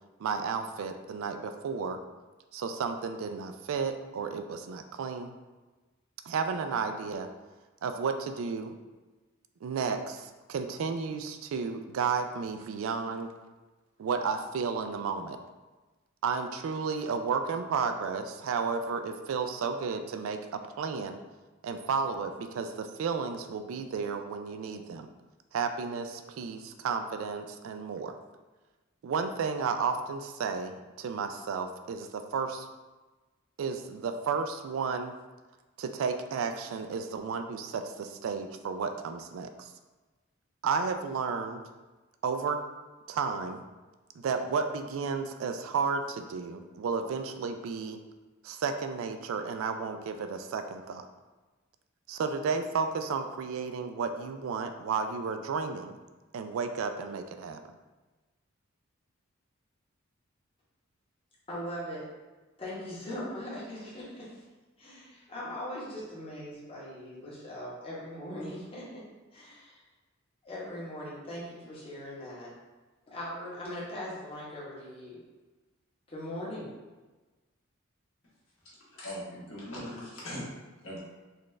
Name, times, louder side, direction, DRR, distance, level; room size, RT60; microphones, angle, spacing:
voice 1, 0.2-2.0 2.5-5.3 6.3-7.3 7.8-8.7 9.6-13.3 14.0-15.4 16.2-21.2 21.6-25.1 25.5-28.1 29.0-32.7 33.6-35.1 35.8-39.7 40.6-41.6 42.2-42.6 43.1-43.6 44.2-48.0 48.4-51.1 52.1-55.9 56.3-57.6, right 5 dB, 80° right, 7 dB, 0.3 m, -32 dB
voice 2, 61.5-62.1 62.6-64.4 64.8-69.0 69.3-69.8 70.4-72.5 73.1-75.2 76.1-76.7, left 1 dB, 25° left, -7 dB, 1.1 m, -40 dB
voice 3, 78.9-80.5 80.8-81.0, equal, 75° left, -6 dB, 1.3 m, -40 dB
4.0 x 2.4 x 3.2 m, 1.2 s
head